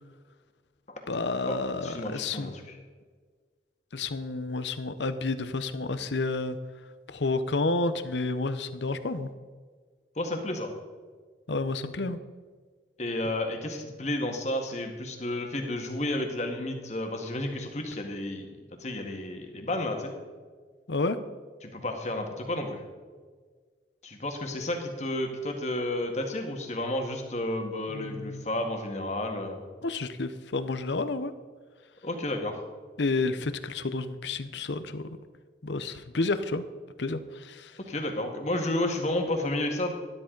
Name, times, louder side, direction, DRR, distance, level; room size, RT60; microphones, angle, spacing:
voice 1, 1.1-2.5 3.9-6.6 7.1-9.3 11.5-12.2 20.9-21.2 27.9-28.4 29.8-31.3 33.0-35.2 35.6-36.6 37.0-37.8, left 3 dB, 80° left, 12 dB, 0.8 m, -30 dB
voice 2, 1.8-2.8 10.2-10.7 13.0-18.5 18.8-20.1 21.6-22.8 24.0-29.6 32.0-32.6 37.8-39.9, left 1 dB, 40° left, 3 dB, 1.7 m, -31 dB
13.0 x 12.0 x 3.9 m, 1.5 s
head